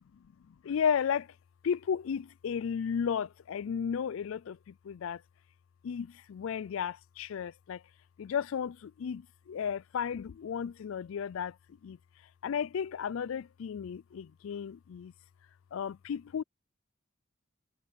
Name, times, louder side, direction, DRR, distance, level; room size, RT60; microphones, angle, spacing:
voice 1, 0.5-1.3 1.6-5.2 5.8-7.8 8.2-11.6 11.8-12.0 12.4-15.1 15.7-16.4, left 7 dB, 75° left, 0.3 m, -34 dB
head